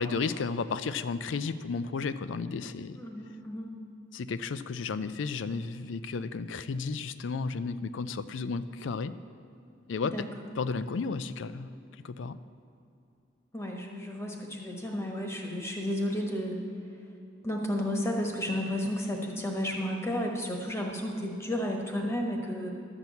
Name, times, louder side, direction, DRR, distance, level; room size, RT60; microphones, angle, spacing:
voice 1, 0.0-3.0 4.1-9.1 9.9-10.3 10.5-11.7 12.0-12.4, left 4 dB, 90° left, 14 dB, 0.4 m, -33 dB
voice 2, 2.9-3.7 10.1-10.2 13.5-16.6 17.4-22.7, left 1 dB, 15° left, 1 dB, 1.2 m, -32 dB
12.0 x 6.1 x 8.2 m, 2.6 s
head